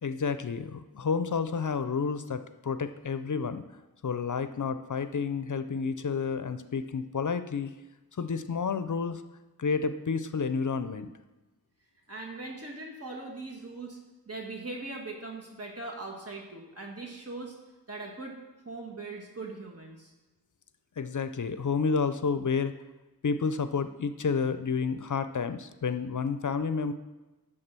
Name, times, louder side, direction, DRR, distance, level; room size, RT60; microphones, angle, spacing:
voice 1, 0.0-3.6 4.0-7.7 8.2-9.2 9.6-11.1 21.0-22.7 23.2-26.9, left 5 dB, 55° left, 11 dB, 0.5 m, -30 dB
voice 2, 12.1-14.0 14.3-17.5 17.9-18.3 18.6-20.1, right 3 dB, 40° right, -2 dB, 1.4 m, -40 dB
10.5 x 3.7 x 6.7 m, 1.1 s
wide cardioid pair, 50°, 37 cm